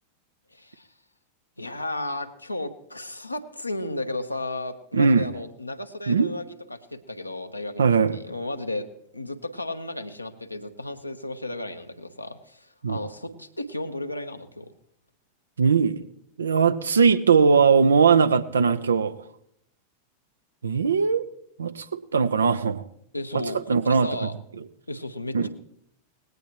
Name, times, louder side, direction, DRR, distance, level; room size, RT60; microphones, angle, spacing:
voice 1, 0.5-0.9 1.6-6.4 6.7-8.9 9.1-14.7 23.1-24.3 24.9-25.5, left 1 dB, 85° left, 7 dB, 1.0 m, -34 dB
voice 2, 4.9-5.3 6.1-6.3 7.8-8.2 12.8-13.0 15.6-16.1 16.4-19.2 20.6-21.2 21.6-21.9 22.1-22.8 23.3-24.3 24.6-24.7 25.3-25.5, right 5 dB, 70° right, 12 dB, 0.7 m, -20 dB
19.5 x 17.0 x 3.0 m, 0.71 s
figure-of-eight pair, 90°, 0 cm